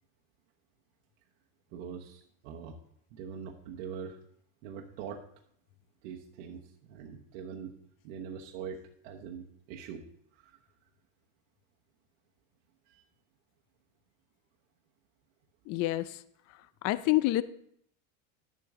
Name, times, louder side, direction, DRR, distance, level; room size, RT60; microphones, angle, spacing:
voice 1, 1.7-2.8 3.1-4.2 4.6-5.2 6.0-7.8 8.0-10.0 10.4-10.6 12.9-13.0, right 7 dB, 70° right, 0 dB, 1.1 m, -43 dB
voice 2, 15.7-16.2 16.8-17.4, left 17 dB, 40° left, 15 dB, 0.4 m, -27 dB
10.5 x 7.3 x 3.7 m, 0.68 s
supercardioid pair, 125°, 40 cm